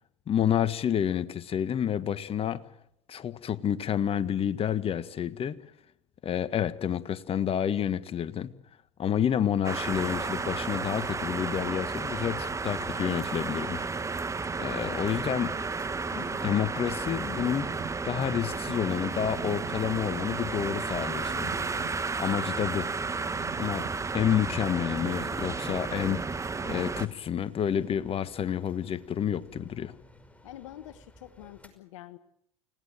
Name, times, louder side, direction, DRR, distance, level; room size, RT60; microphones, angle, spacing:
voice 1, 0.3-2.6 3.1-5.6 6.2-8.5 9.0-14.2 14.6-15.5 16.1-21.5 22.2-22.9 23.6-23.9 24.1-26.2 26.6-29.9, left 9 dB, 35° left, 13 dB, 1.7 m, -29 dB
sound 1, 9.6-27.1, right 4 dB, 20° right, 1.5 m, -32 dB
sound 2, 15.2-31.7, left 1 dB, 10° left, 5.5 m, -53 dB
sound 3, 17.6-25.5, right 15 dB, 55° right, 1.8 m, -48 dB
voice 2, 30.4-32.2, left 14 dB, 70° left, 14 dB, 1.4 m, -46 dB
29.5 x 18.0 x 7.7 m, 0.75 s
hypercardioid pair, 75°, 17 cm